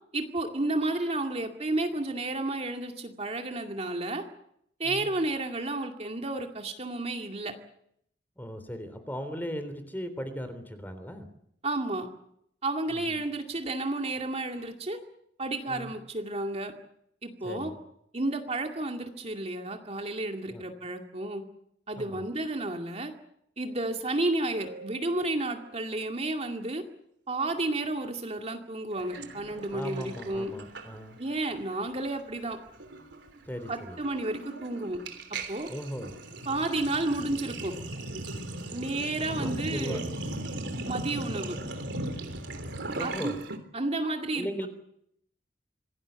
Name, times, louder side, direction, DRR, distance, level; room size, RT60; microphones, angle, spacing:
voice 1, 0.1-4.2 4.8-7.5 11.6-12.1 12.6-15.0 15.4-16.7 17.2-17.7 18.1-21.4 21.9-23.1 23.6-26.8 27.3-30.5 31.2-32.6 33.7-35.0 35.5-35.7 36.5-37.7 38.7-40.0 40.8-41.6 43.0-43.3 43.7-44.7, right 2 dB, 35° right, 4 dB, 2.3 m, -31 dB
voice 2, 8.4-11.3 12.9-13.2 15.7-15.9 17.4-17.8 20.5-20.6 22.0-22.3 29.7-31.2 33.4-34.0 35.7-36.2 36.5-36.7 39.3-40.0 42.9-43.4 44.4-44.7, equal, 10° left, 10 dB, 3.4 m, -38 dB
sound 1, 24.1-24.2 24.6-26.4 29.0-29.3, right 5 dB, 70° right, 3.0 m, -49 dB
Sink (filling or washing), 29.1-31.3 31.6-31.9 32.2-43.6, right 2 dB, 90° right, 3.5 m, -38 dB
26.5 x 18.0 x 8.2 m, 0.73 s
head